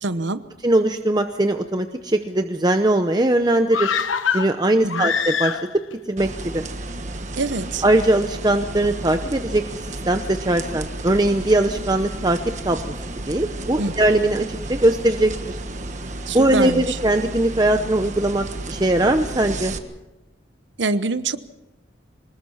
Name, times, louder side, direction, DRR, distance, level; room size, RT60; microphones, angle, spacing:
voice 1, 0.0-0.4 4.8-5.1 7.4-7.8 13.8-13.9 16.3-17.0 20.8-21.4, right 3 dB, 70° right, 12 dB, 1.0 m, -25 dB
voice 2, 0.6-3.9 4.3-5.6 6.1-6.6 7.8-9.6 9.9-12.4 12.6-12.9 13.3-15.6 16.3-19.7, right 1 dB, 20° right, 6 dB, 0.8 m, -20 dB
sound 1, 3.7-5.9 6.2-6.3, left 7 dB, 90° left, 1.1 m, -24 dB
sound 2, 6.2-19.8, right 2 dB, 40° right, 1.4 m, -32 dB
24.5 x 20.5 x 5.7 m, 1.0 s
head